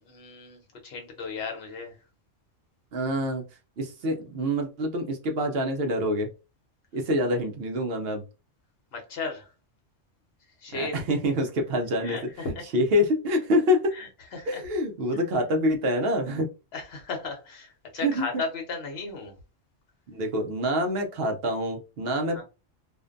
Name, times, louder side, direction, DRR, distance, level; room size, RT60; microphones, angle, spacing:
voice 1, 0.0-2.0 8.9-9.5 10.6-11.0 12.0-12.6 13.9-14.6 16.7-19.3 22.3-22.4, left 3 dB, 60° left, 1.0 m, -35 dB
voice 2, 2.9-3.4 3.8-6.3 6.9-8.2 10.7-12.2 12.7-14.0 14.5-16.5 18.0-18.3 20.1-22.4, left 1 dB, 60° right, 0.7 m, -26 dB
2.5 x 2.1 x 2.5 m
omnidirectional pair, 1.3 m